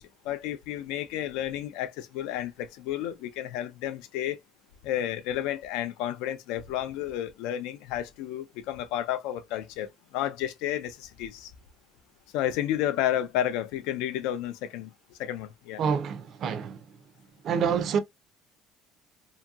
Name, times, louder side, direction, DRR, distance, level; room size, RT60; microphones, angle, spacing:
voice 1, 0.0-4.4 4.8-11.5 12.3-14.9 15.2-15.8, left 12 dB, 85° left, 0.4 m, -31 dB
voice 2, 15.8-16.8 17.4-18.0, right 7 dB, 50° right, 0.4 m, -27 dB
2.8 x 2.7 x 2.3 m
cardioid pair, 135°, 0 cm